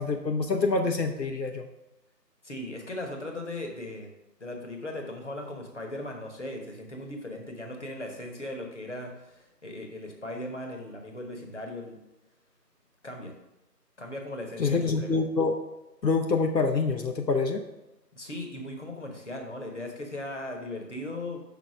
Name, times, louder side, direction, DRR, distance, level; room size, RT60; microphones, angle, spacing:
voice 1, 0.0-1.7 14.6-15.5 16.0-17.6, left 4 dB, 80° left, 3 dB, 0.9 m, -26 dB
voice 2, 2.4-4.1 4.4-12.0 13.0-13.3 14.0-15.2 18.1-21.4, left 1 dB, 45° left, 2 dB, 1.2 m, -38 dB
6.1 x 4.2 x 5.9 m, 0.98 s
figure-of-eight pair, 170°, 50 cm